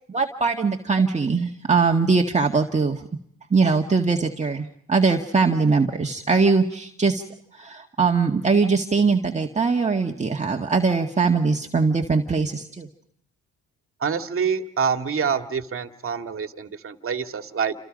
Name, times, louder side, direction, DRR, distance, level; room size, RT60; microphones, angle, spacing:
voice 1, 0.1-3.0 3.5-7.2 7.5-12.9, right 4 dB, 25° right, 1 dB, 1.8 m, -21 dB
voice 2, 14.0-17.7, right 6 dB, 45° right, 7 dB, 2.0 m, -26 dB
29.0 x 28.0 x 5.3 m, 0.69 s
cardioid pair, 90°, 30 cm